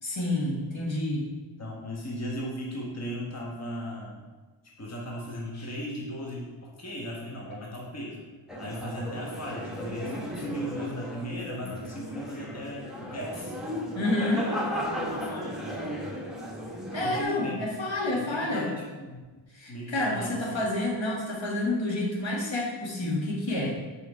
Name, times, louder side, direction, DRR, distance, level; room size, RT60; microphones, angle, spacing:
voice 1, 0.0-1.3 5.5-5.7 14.0-14.5 16.9-18.7 19.5-23.8, left 1 dB, 70° left, -4 dB, 1.6 m, -29 dB
voice 2, 1.6-4.2 4.8-8.2 8.6-13.5 14.4-14.7 15.1-16.1 16.9-19.2 19.7-20.6, equal, 30° left, -3 dB, 1.3 m, -37 dB
sound 1, 8.5-17.2, equal, ahead, 1.0 m, -35 dB
5.2 x 5.0 x 4.8 m, 1.3 s
wide cardioid pair, 85°, 48 cm